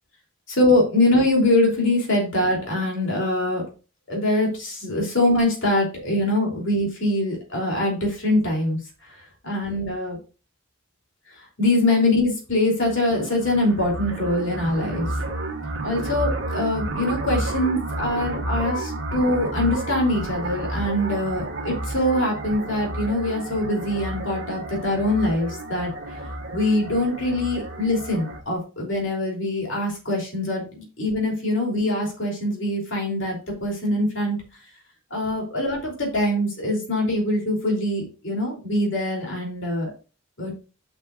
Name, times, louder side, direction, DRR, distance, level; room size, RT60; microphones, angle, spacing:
voice 1, 0.5-3.6 4.1-10.2 11.6-15.1 15.8-25.9 26.5-34.4 35.1-39.9 40.4-40.6, left 1 dB, 60° left, -1 dB, 3.3 m, -23 dB
sound 1, 12.8-28.4, right 1 dB, 55° right, 1.3 m, -31 dB
8.8 x 6.2 x 2.5 m, 0.34 s
head